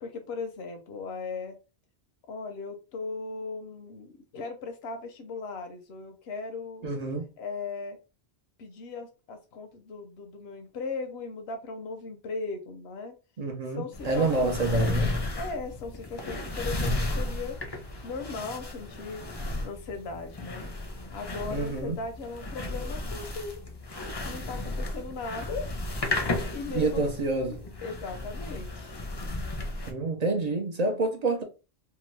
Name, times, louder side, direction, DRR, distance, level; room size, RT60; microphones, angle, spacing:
voice 1, 0.0-1.5 2.3-6.9 7.4-8.0 8.6-13.1 13.7-14.6 15.3-17.6 18.0-19.2 19.6-20.7 21.1-23.6 24.2-25.7 26.5-27.0 27.5-29.0, left 4 dB, 75° left, 0.9 m, -38 dB
voice 2, 6.8-7.3 13.4-15.1 21.5-22.0 26.7-27.6 29.9-31.4, right 2 dB, 50° right, 0.5 m, -27 dB
sound 1, 13.9-29.9, left 2 dB, 30° left, 0.5 m, -34 dB
2.9 x 2.2 x 3.1 m
omnidirectional pair, 1.1 m